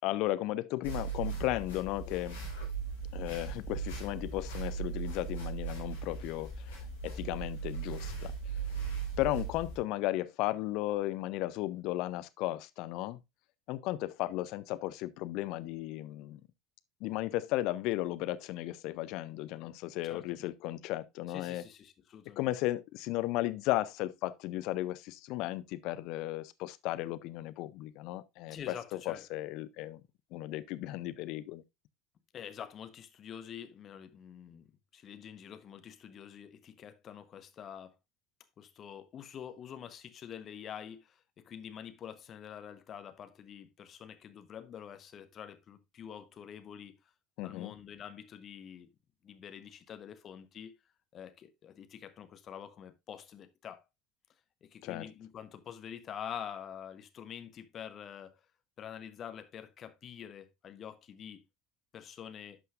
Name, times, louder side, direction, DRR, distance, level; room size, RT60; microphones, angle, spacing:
voice 1, 0.0-2.4 3.1-8.3 9.2-13.2 13.7-16.4 17.0-21.6 22.4-30.0 30.3-31.6 47.4-47.7 54.8-55.1, left 16 dB, 55° left, 0.5 m, -35 dB
sound 1, 0.8-9.8, right 5 dB, 75° left, 3.4 m, -38 dB
voice 2, 21.3-22.5 28.5-29.3 32.3-38.0 38.6-46.9 47.4-48.9 49.2-50.7 51.1-53.8 54.6-58.4 58.8-61.4 61.9-62.6, left 8 dB, 40° left, 1.0 m, -46 dB
11.0 x 5.5 x 2.5 m
figure-of-eight pair, 70°, 0 cm